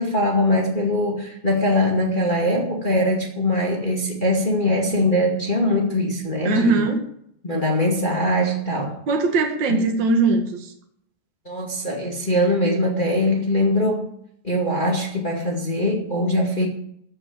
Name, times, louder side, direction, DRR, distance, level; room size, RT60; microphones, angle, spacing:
voice 1, 0.0-6.8 7.4-9.0 9.7-9.9 11.5-14.1 14.4-16.7, left 1 dB, 20° left, -1 dB, 1.8 m, -22 dB
voice 2, 6.4-7.0 9.1-10.7, right 3 dB, 40° right, 4 dB, 2.2 m, -20 dB
14.0 x 6.3 x 8.4 m, 0.69 s
omnidirectional pair, 3.5 m